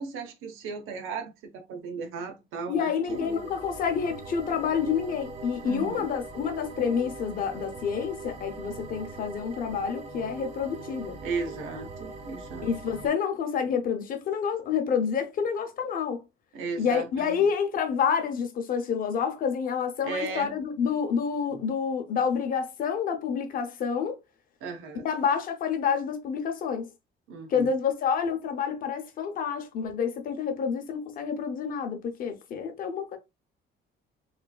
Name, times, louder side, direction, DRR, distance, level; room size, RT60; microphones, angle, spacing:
voice 1, 0.0-3.4 5.6-6.1 11.2-12.7 16.5-17.4 20.0-20.5 21.5-21.7 24.6-25.1 27.3-27.7, right 4 dB, 85° right, 0.8 m, -36 dB
voice 2, 2.7-11.2 12.6-16.2 16.8-24.2 25.0-26.9 27.5-33.2, left 6 dB, 45° left, 0.6 m, -28 dB
sound 1, 3.1-13.1, right 3 dB, 30° right, 0.6 m, -41 dB
3.2 x 3.0 x 2.2 m
cardioid pair, 180°, 21 cm